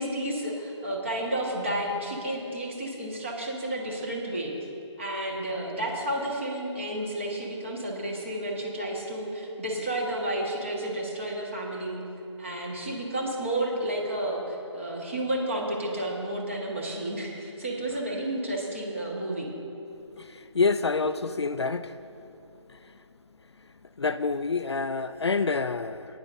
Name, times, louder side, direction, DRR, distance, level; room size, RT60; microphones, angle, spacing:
voice 1, 0.0-4.5 5.0-12.0 12.4-19.5, right 1 dB, 25° right, -2 dB, 1.5 m, -31 dB
voice 2, 20.2-21.9 24.0-26.1, left 4 dB, 60° left, 12 dB, 0.4 m, -27 dB
22.5 x 10.0 x 2.7 m, 2.8 s
figure-of-eight pair, 175°, 16 cm